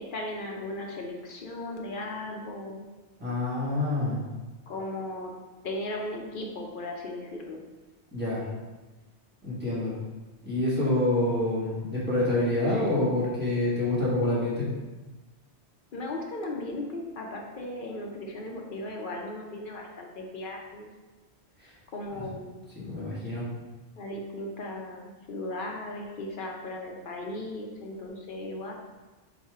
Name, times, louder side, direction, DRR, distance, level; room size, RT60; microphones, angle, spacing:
voice 1, 0.0-2.9 4.7-5.3 5.6-7.6 15.9-20.9 21.9-22.6 24.0-28.7, left 1 dB, 55° left, 0 dB, 0.7 m, -36 dB
voice 2, 3.2-4.2 8.1-8.4 9.4-9.9 10.4-14.7 21.6-21.7 22.7-23.4, left 1 dB, 10° right, -8 dB, 1.4 m, -27 dB
4.2 x 2.4 x 4.6 m, 1.2 s
omnidirectional pair, 1.2 m